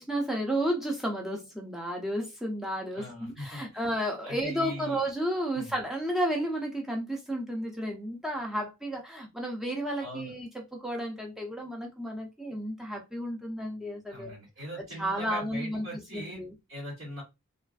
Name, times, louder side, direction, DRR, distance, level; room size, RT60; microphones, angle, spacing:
voice 1, 0.0-14.4 14.8-16.5, right 1 dB, ahead, 0.5 m, -32 dB
voice 2, 2.9-3.8 4.2-5.0 5.5-5.7 10.0-10.3 14.1-16.4 16.7-17.2, equal, 60° right, 1.3 m, -40 dB
3.0 x 2.4 x 2.4 m
head